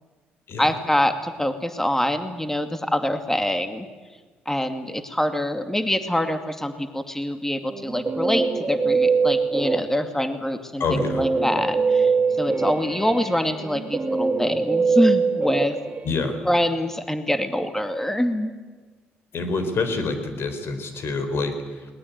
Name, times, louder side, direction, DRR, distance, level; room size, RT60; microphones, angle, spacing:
voice 1, 0.6-3.9 4.5-12.1 12.4-15.8 16.4-18.5, left 1 dB, 10° left, 7 dB, 2.4 m, -25 dB
Guitar, 7.7-10.2 11.0-16.4, right 4 dB, 35° right, 1.9 m, -23 dB
voice 2, 10.8-11.2 16.0-16.4 19.3-21.9, left 3 dB, 60° left, 9 dB, 4.4 m, -27 dB
21.0 x 19.5 x 9.6 m, 1.4 s
hypercardioid pair, 50°, 5 cm